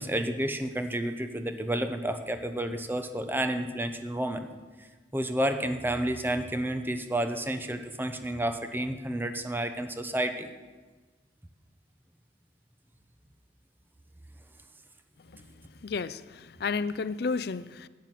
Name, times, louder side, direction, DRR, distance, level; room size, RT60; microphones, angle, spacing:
voice 1, 0.0-4.5 5.1-10.5, right 1 dB, 10° right, 8 dB, 0.8 m, -30 dB
voice 2, 15.8-17.9, left 4 dB, 60° left, 16 dB, 0.4 m, -32 dB
11.5 x 9.7 x 7.5 m, 1.3 s
head